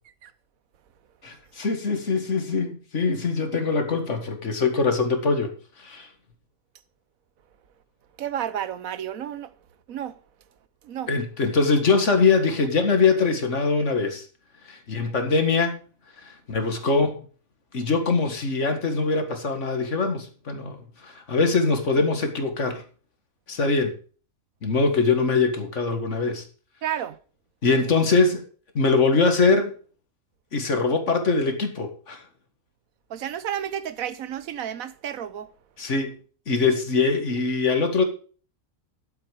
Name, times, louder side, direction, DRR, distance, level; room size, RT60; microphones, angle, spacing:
voice 1, 1.2-5.5 5.8-6.1 11.1-14.3 14.7-15.8 16.2-17.2 17.7-22.8 23.5-23.9 24.6-26.4 27.6-28.4 28.8-29.7 30.5-32.2 35.8-36.2 36.5-38.0, left 4 dB, 60° left, 2.1 m, -22 dB
voice 2, 8.2-9.5 9.9-10.2 10.8-11.1 26.8-27.2 33.1-35.5, right 10 dB, 85° right, 1.3 m, -31 dB
12.0 x 7.8 x 5.0 m
omnidirectional pair, 1.4 m